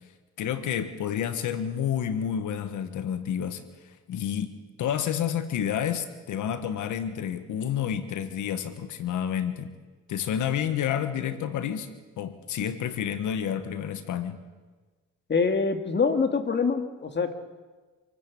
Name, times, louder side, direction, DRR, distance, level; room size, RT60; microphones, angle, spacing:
voice 1, 0.4-3.6 4.1-9.7 10.1-14.4, left 9 dB, 80° left, 11 dB, 1.6 m, -29 dB
voice 2, 15.3-17.3, left 5 dB, 35° left, 7 dB, 2.3 m, -25 dB
27.5 x 15.0 x 8.7 m, 1.3 s
cardioid pair, 90°, 30 cm